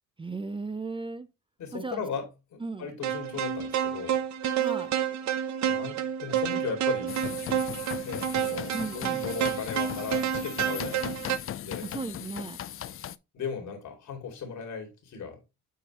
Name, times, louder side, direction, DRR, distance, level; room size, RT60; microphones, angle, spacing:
voice 1, 0.2-1.3 1.7-2.0 2.6-2.9 4.6-4.9 8.7-9.3 11.8-12.6, right 3 dB, 15° right, 0.5 m, -36 dB
voice 2, 1.6-4.2 5.6-7.2 8.0-11.1 11.6-11.9 13.3-15.4, left 6 dB, 70° left, 2.6 m, -37 dB
sound 1, 3.0-11.4, right 9 dB, 65° right, 0.8 m, -29 dB
sound 2, 7.1-13.2, left 11 dB, 45° left, 0.4 m, -38 dB
8.1 x 4.5 x 3.0 m
cardioid pair, 90°, 30 cm